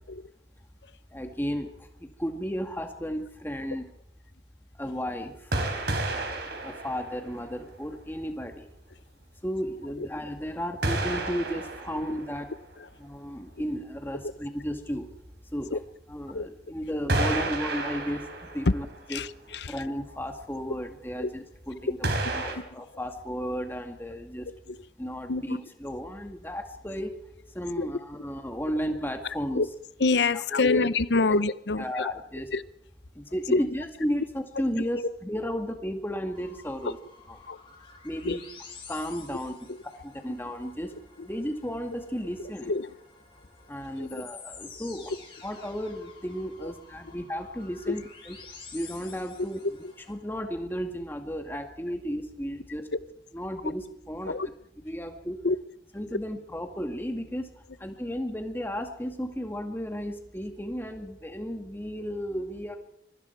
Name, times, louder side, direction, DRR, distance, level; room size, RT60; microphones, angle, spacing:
voice 1, 1.1-1.7 2.0-3.9 4.8-5.5 6.4-8.7 9.4-12.5 13.0-15.1 15.5-15.8 16.1-18.3 18.5-19.3 19.7-24.5 25.0-27.2 27.5-29.6 30.3-30.8 31.1-31.2 31.8-32.5 33.2-37.0 37.3-37.4 38.0-38.4 38.9-39.7 40.0-40.9 41.2-42.7 43.7-45.1 45.4-48.4 48.7-49.6 50.1-52.9 53.3-54.4 54.8-55.4 55.9-57.5 57.8-62.8, equal, 10° left, 2.1 m, -34 dB
sound 1, 5.5-7.7 8.1-8.2 10.8-12.7 15.6-15.7 17.1-19.0 19.4-19.5 22.0-22.6, right 2 dB, 65° right, 4.0 m, -30 dB
voice 2, 19.1-19.8 21.1-21.3 22.2-22.8 24.7-24.8 25.3-25.6 27.8-27.9 29.5-29.7 30.0-32.1 32.5-32.6 33.5-33.6 37.5-37.6 38.2-38.4 39.7-39.8 41.2-41.3 42.6-42.9 44.0-44.2 46.6-46.7 47.9-48.0 49.8-49.9 53.6-53.7 54.3-54.5 55.4-55.6, left 3 dB, 75° left, 0.8 m, -27 dB
sound 2, 36.3-50.1, left 5 dB, 30° left, 7.2 m, -50 dB
25.5 x 23.0 x 4.7 m
head